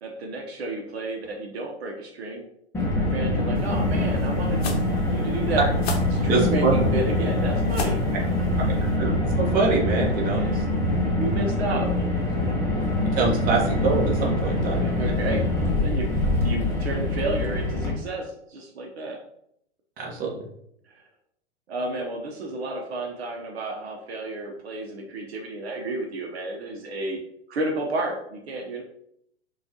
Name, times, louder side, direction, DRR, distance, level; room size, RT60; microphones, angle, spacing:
voice 1, 0.0-2.5 3.1-5.7 6.1-8.0 10.3-10.6 11.0-11.9 12.2-12.5 14.8-19.2 20.9-21.0 21.7-27.2 27.5-28.8, right 2 dB, 60° right, 1 dB, 0.8 m, -31 dB
Car, 2.7-17.9, left 1 dB, 5° left, 0.8 m, -24 dB
sound 1, 3.5-9.0, left 2 dB, 60° left, 0.8 m, -33 dB
voice 2, 6.2-6.7 8.7-9.1 9.4-10.6 13.1-15.1 20.0-20.4, right 4 dB, 25° right, -2 dB, 0.9 m, -25 dB
4.1 x 2.5 x 2.8 m, 0.72 s
figure-of-eight pair, 100°, 35 cm